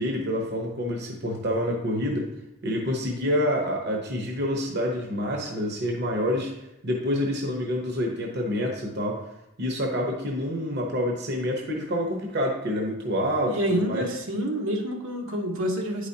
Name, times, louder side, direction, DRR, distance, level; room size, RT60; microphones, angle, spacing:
voice 1, 0.0-2.3 2.6-6.5 6.8-9.2 9.6-14.1, equal, 50° right, 0 dB, 1.0 m, -27 dB
voice 2, 13.5-16.1, equal, 80° right, 1 dB, 1.2 m, -27 dB
9.6 x 5.0 x 2.8 m, 0.87 s
head